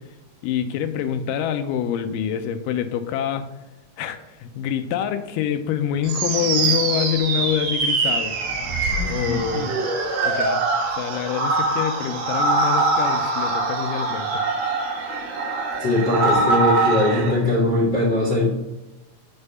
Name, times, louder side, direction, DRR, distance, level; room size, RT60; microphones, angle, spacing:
voice 1, 0.4-3.5 4.0-8.4 9.1-9.7 10.2-10.6 11.0-14.8, left 9 dB, 90° left, 8 dB, 2.2 m, -26 dB
sound 1, 6.1-17.3, right 3 dB, 75° right, 2.6 m, -23 dB
voice 2, 15.8-18.5, left 2 dB, 40° left, -6 dB, 1.7 m, -20 dB
8.0 x 3.5 x 5.4 m, 1.0 s
omnidirectional pair, 3.8 m